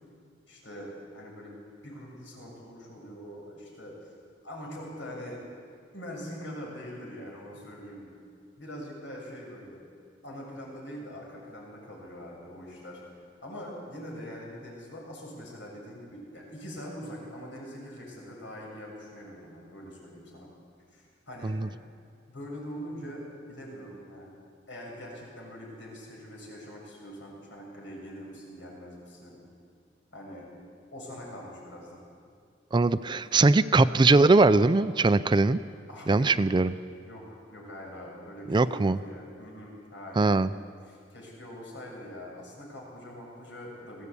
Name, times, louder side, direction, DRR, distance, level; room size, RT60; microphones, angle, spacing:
voice 1, 0.5-1.6 1.8-4.1 4.4-5.4 5.9-8.1 8.6-9.8 10.2-20.5 20.9-21.8 22.3-24.3 24.7-29.4 30.1-30.5 30.9-32.0 35.9-36.3 37.0-40.5 40.8-44.1, equal, 90° left, -2 dB, 6.9 m, -43 dB
voice 2, 32.7-35.6 36.1-36.7 38.5-39.0 40.2-40.5, right 3 dB, 25° right, 14 dB, 0.4 m, -21 dB
21.0 x 16.0 x 8.3 m, 2.3 s
head